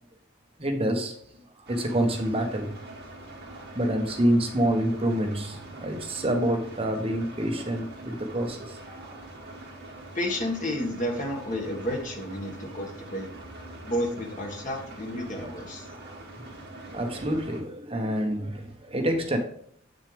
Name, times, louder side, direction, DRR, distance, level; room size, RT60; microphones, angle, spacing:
voice 1, 0.6-1.1 1.6-2.8 3.4-9.3 10.0-10.1 15.4-15.6 15.9-16.2 16.9-19.4, right 1 dB, 30° right, 4 dB, 1.0 m, -27 dB
sound 1, 1.7-17.6, right 1 dB, 50° right, 2.4 m, -44 dB
voice 2, 10.1-13.3 13.9-15.9, left 1 dB, 40° left, 1 dB, 1.8 m, -31 dB
8.1 x 6.4 x 3.4 m, 0.63 s
head